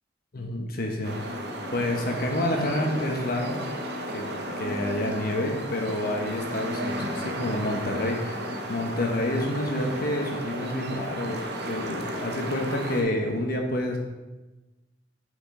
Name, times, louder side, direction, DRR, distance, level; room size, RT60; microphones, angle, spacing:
voice 1, 0.3-1.4 1.7-3.6 4.1-4.3 4.6-14.0, left 1 dB, 50° left, 2 dB, 0.9 m, -29 dB
sound 1, 1.0-13.0, right 1 dB, 60° right, 0.8 m, -34 dB
6.0 x 4.9 x 3.7 m, 1.1 s
head